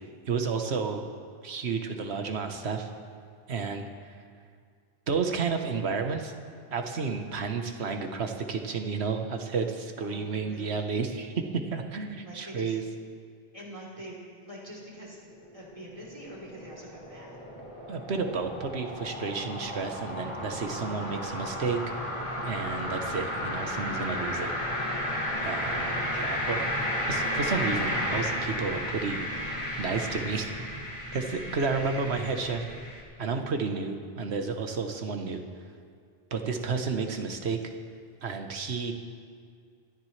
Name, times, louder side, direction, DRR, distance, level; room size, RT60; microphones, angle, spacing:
voice 1, 0.3-1.1 1.4-2.9 3.5-3.9 5.1-6.3 6.7-12.8 17.9-21.8 22.4-24.5 25.4-26.8 27.1-29.5 29.8-30.5 31.1-32.6 33.2-35.4 36.3-37.6 38.2-38.9, right 5 dB, 85° right, 5 dB, 1.3 m, -31 dB
voice 2, 10.0-10.8 12.2-12.8 13.5-15.2 15.5-17.4, right 1 dB, 30° right, -5 dB, 3.5 m, -45 dB
sound 1, 15.4-33.0, equal, 30° left, 2.2 m, -33 dB
25.5 x 10.5 x 3.3 m, 2.2 s
omnidirectional pair, 1.1 m